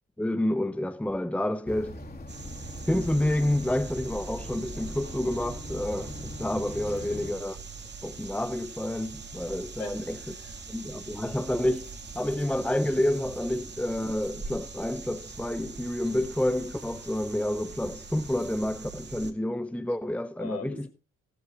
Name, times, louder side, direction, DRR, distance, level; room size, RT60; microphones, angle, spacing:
voice 1, 0.2-2.0 2.9-7.6 8.0-10.2 10.7-20.9, left 1 dB, 5° left, 0.9 m, -29 dB
sound 1, 1.7-7.3, left 1 dB, 30° left, 3.0 m, -41 dB
sound 2, 2.3-19.3, right 4 dB, 35° right, 2.2 m, -42 dB
voice 2, 6.9-7.2 9.8-10.6 20.4-20.9, left 6 dB, 55° left, 4.6 m, -43 dB
15.0 x 13.5 x 3.0 m
cardioid pair, 90°, 30 cm